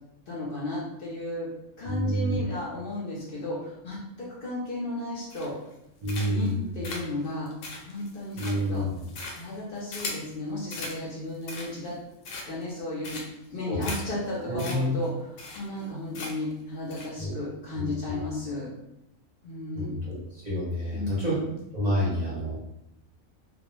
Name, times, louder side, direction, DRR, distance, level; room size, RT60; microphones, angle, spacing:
voice 1, 0.3-1.5 1.8-5.5 6.3-7.5 7.8-8.8 9.3-12.0 12.5-13.2 13.5-15.1 15.6-18.7 19.4-19.9 20.9-21.4, left 1 dB, 55° left, -4 dB, 0.7 m, -34 dB
voice 2, 1.8-2.5 6.0-6.7 8.4-9.1 13.7-14.1 14.4-15.0 17.2-17.4 17.7-18.2 19.8-20.0 20.3-21.3 21.7-22.6, equal, 40° right, -8 dB, 0.6 m, -29 dB
sound 1, 5.3-5.7 6.1-6.5 6.8-10.3 10.7-11.0 11.3-11.9 12.2-12.7 13.0-13.5 13.8-14.0 14.3-14.4 14.6-14.8 15.0-15.1 15.4-15.9 16.1-16.5 16.9-17.1, left 3 dB, 85° left, 1.0 m, -38 dB
2.3 x 2.1 x 3.0 m, 0.84 s
omnidirectional pair, 1.4 m